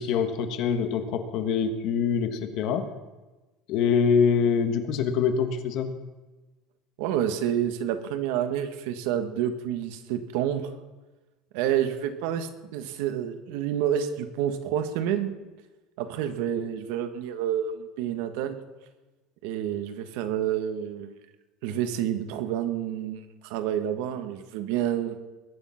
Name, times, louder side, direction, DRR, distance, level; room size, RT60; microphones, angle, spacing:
voice 1, 0.0-2.8 3.7-5.9, left 6 dB, 50° left, 8 dB, 1.5 m, -24 dB
voice 2, 7.0-10.7 11.5-15.3 16.0-18.6 19.4-21.1 21.6-25.2, right 10 dB, 70° right, 9 dB, 1.6 m, -29 dB
21.0 x 10.0 x 5.9 m, 1.2 s
cardioid pair, 165°, 0 cm